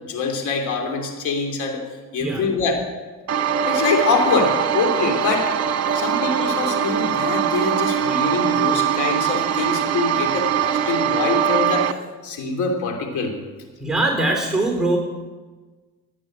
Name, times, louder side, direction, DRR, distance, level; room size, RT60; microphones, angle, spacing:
voice 1, 0.1-1.8 2.1-2.8 3.7-5.5 5.9-11.9 12.2-13.3, left 4 dB, 80° left, 3 dB, 3.1 m, -24 dB
sound 1, 3.3-11.9, right 8 dB, 55° right, 1.2 m, -22 dB
voice 2, 13.8-15.0, right 2 dB, ahead, 1 dB, 3.8 m, -21 dB
15.0 x 9.8 x 7.9 m, 1.3 s
cardioid pair, 90°, 30 cm